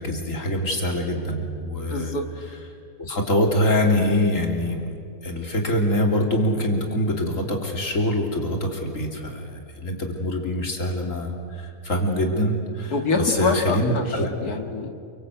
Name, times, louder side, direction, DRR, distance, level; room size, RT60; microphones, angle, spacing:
voice 1, 0.0-2.2 3.0-4.9 5.2-12.9 13.2-14.3, left 1 dB, 55° left, 2 dB, 3.6 m, -24 dB
voice 2, 1.9-2.2 12.9-14.9, left 3 dB, 90° left, 4 dB, 2.6 m, -25 dB
29.5 x 23.5 x 8.3 m, 2.4 s
omnidirectional pair, 1.6 m